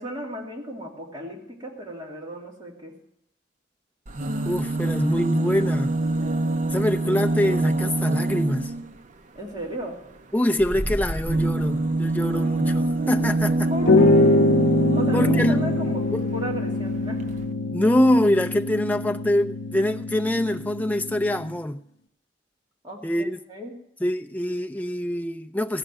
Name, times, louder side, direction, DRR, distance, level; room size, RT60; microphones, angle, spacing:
voice 1, 0.0-2.9 9.3-10.0 13.7-14.4 15.0-17.2 22.8-23.7, equal, 25° right, 2.6 m, -35 dB
sound 1, 4.1-8.9 10.6-16.1 17.0-17.1 17.3-17.4, right 2 dB, 45° right, 0.6 m, -25 dB
voice 2, 4.4-6.0 6.7-8.7 10.3-13.7 15.1-15.6 16.1-16.3 17.7-21.8 23.0-23.4 24.0-25.8, left 1 dB, 10° left, 0.5 m, -24 dB
sound 2, 13.8-21.5, left 2 dB, 85° left, 0.6 m, -23 dB
15.0 x 5.1 x 8.9 m
head